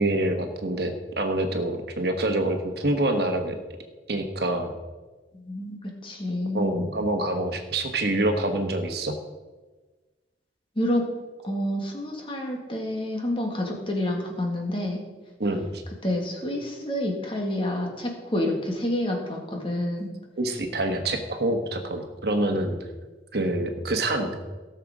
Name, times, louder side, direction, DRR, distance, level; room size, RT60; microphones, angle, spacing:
voice 1, 0.0-3.5 4.1-4.7 6.5-9.1 15.4-15.8 20.4-22.8 23.3-24.4, right 1 dB, 60° right, 5 dB, 1.3 m, -26 dB
voice 2, 5.3-5.8 6.0-6.9 10.8-11.0 11.4-15.0 16.0-20.1, left 1 dB, 30° left, 1 dB, 1.9 m, -28 dB
17.0 x 6.8 x 4.9 m, 1.3 s
head